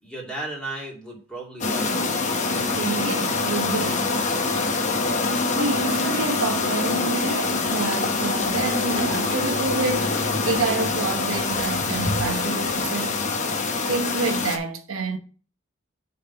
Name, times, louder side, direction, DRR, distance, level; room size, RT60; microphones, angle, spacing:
voice 1, 0.0-2.3, right 2 dB, 5° left, 2.5 m, -35 dB
sound 1, 1.6-14.6, left 3 dB, 35° left, 0.9 m, -25 dB
voice 2, 2.6-4.1 4.5-4.7 5.6-10.2 10.4-13.2 13.9-15.2, right 3 dB, 85° right, 1.0 m, -28 dB
6.7 x 4.1 x 5.8 m
head